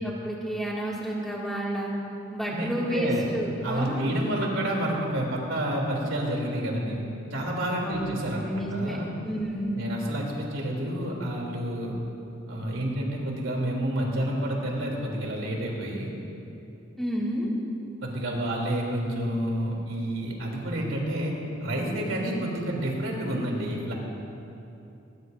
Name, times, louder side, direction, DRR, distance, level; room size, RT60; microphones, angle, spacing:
voice 1, 0.0-1.9 2.3-4.0 7.8-9.8 17.0-17.5, equal, ahead, -6 dB, 2.3 m, -30 dB
voice 2, 2.5-3.3 3.6-7.0 7.3-9.1 9.7-11.9 12.5-16.1 18.0-21.3 21.6-23.9, right 1 dB, 80° right, -2 dB, 3.3 m, -29 dB
20.0 x 20.0 x 2.7 m, 2.8 s
head